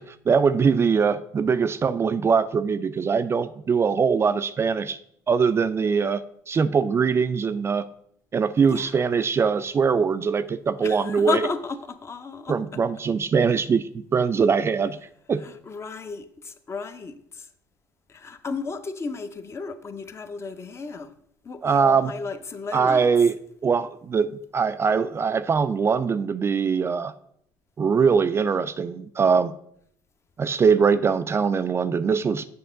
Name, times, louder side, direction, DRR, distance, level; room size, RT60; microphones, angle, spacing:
voice 1, 0.0-5.0 5.3-6.2 6.5-7.8 8.3-11.5 12.5-15.0 15.3-15.4 21.6-22.1 22.7-23.3 23.6-27.1 27.8-29.5 30.4-32.5, right 6 dB, 30° right, 0.3 m, -22 dB
voice 2, 10.8-12.6 15.4-17.5 18.1-21.1 21.4-23.0, left 4 dB, 35° left, 0.7 m, -33 dB
7.0 x 4.8 x 3.7 m
hypercardioid pair, 65°, 8 cm